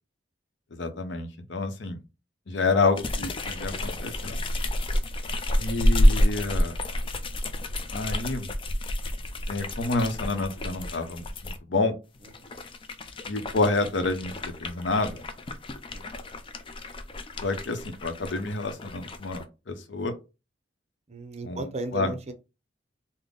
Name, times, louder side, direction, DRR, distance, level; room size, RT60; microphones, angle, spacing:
voice 1, 0.7-2.0 2.5-4.4 5.6-6.8 7.9-8.5 9.5-11.9 13.3-15.2 17.4-20.1 21.4-22.1, left 3 dB, 75° left, 0.7 m, -29 dB
sound 1, 2.9-11.6 12.2-19.4, left 1 dB, 30° left, 0.4 m, -29 dB
voice 2, 21.1-22.3, right 1 dB, 35° right, 0.6 m, -35 dB
3.9 x 2.1 x 3.5 m
head